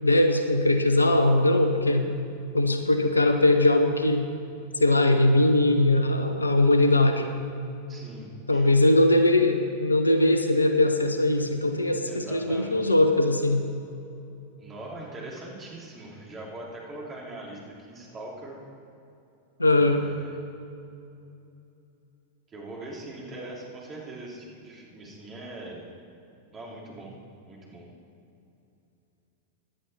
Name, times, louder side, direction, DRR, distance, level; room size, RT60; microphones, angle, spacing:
voice 1, 0.0-2.1 2.5-4.3 4.8-7.3 8.5-13.6 19.6-20.0, left 1 dB, 80° left, 7 dB, 0.9 m, -21 dB
voice 2, 7.9-8.7 12.0-12.9 14.6-18.6 19.7-20.3 22.5-25.8 26.5-27.1 27.5-27.8, right 2 dB, 25° right, -3 dB, 3.2 m, -41 dB
16.5 x 11.0 x 4.3 m, 2.7 s
figure-of-eight pair, 90°, 0 cm